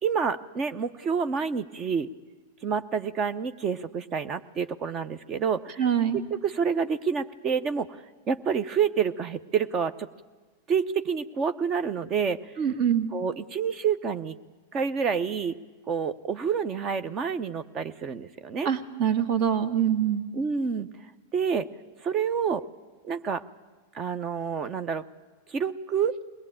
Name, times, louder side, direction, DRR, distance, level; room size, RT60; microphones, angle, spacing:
voice 1, 0.0-2.1 2.6-5.8 6.4-10.1 10.7-12.4 13.1-14.3 14.7-15.5 15.9-18.7 20.3-20.9 21.3-21.7 22.0-22.6 23.0-23.4 23.9-25.0 25.5-26.1, right 6 dB, 30° right, 13 dB, 0.8 m, -28 dB
voice 2, 5.8-6.2 12.6-13.1 18.6-20.3, right 9 dB, 50° right, 10 dB, 1.9 m, -24 dB
22.0 x 19.0 x 8.8 m, 1.3 s
hypercardioid pair, 100°, 0 cm